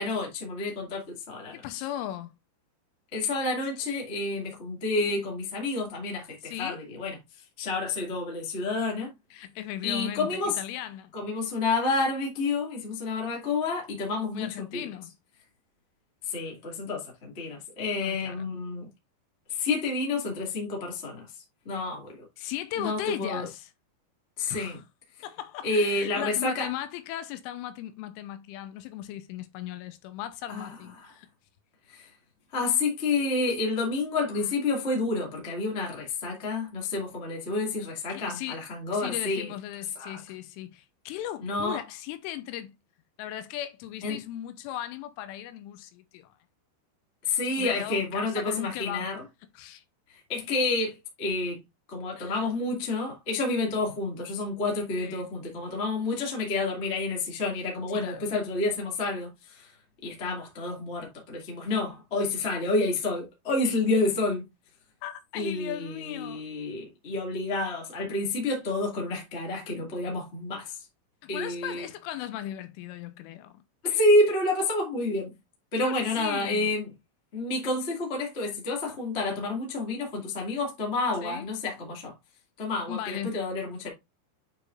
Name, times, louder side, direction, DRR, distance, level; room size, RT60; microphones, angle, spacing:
voice 1, 0.0-1.6 3.1-7.1 7.6-9.1 9.8-10.6 11.1-14.9 16.2-18.9 19.5-21.3 21.6-22.1 22.8-23.5 24.4-24.8 25.6-26.7 30.5-30.7 31.0-31.1 31.9-32.1 32.5-39.5 39.9-40.2 41.4-41.8 44.0-44.2 47.2-49.2 50.1-51.6 51.9-59.7 60.0-64.4 65.3-70.8 71.3-71.9 73.8-75.3 75.7-76.9 77.3-82.1 82.6-83.9, left 2 dB, 40° left, 0.9 m, -29 dB
voice 2, 1.5-2.3 6.4-6.8 9.3-11.1 14.3-15.1 18.0-18.5 22.4-23.7 24.5-24.8 25.2-31.3 34.3-34.5 38.1-38.6 38.9-42.8 43.2-46.4 47.4-49.1 49.5-49.8 52.2-52.5 55.0-55.3 57.9-58.3 65.0-66.4 71.2-73.6 75.8-76.7 81.2-81.5 82.9-83.4, left 12 dB, 90° left, 3.2 m, -37 dB
9.1 x 4.9 x 2.6 m
omnidirectional pair, 5.7 m